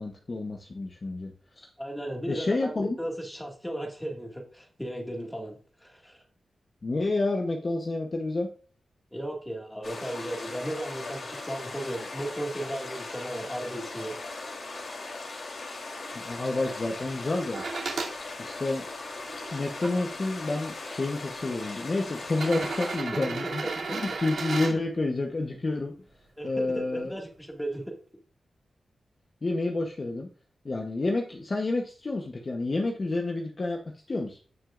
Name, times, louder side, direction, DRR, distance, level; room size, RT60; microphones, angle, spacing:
voice 1, 0.0-1.7 2.3-3.0 6.8-8.5 16.1-17.6 18.4-18.8 19.5-23.6 23.9-25.9 26.4-27.1 29.4-30.3 30.6-33.8 34.1-34.4, left 2 dB, 35° left, 2 dB, 0.9 m, -29 dB
voice 2, 1.8-6.2 9.1-14.2 23.6-24.0 24.6-24.8 26.4-27.9, right 1 dB, 5° left, 1 dB, 1.9 m, -36 dB
sound 1, 9.8-23.0, left 3 dB, 55° left, 3.1 m, -39 dB
sound 2, 17.5-18.1 18.9-19.9 20.9-21.0 22.3-24.7 26.6-26.7, right 4 dB, 85° right, 2.7 m, -34 dB
16.5 x 6.2 x 2.5 m, 0.41 s
wide cardioid pair, 150°, 0 cm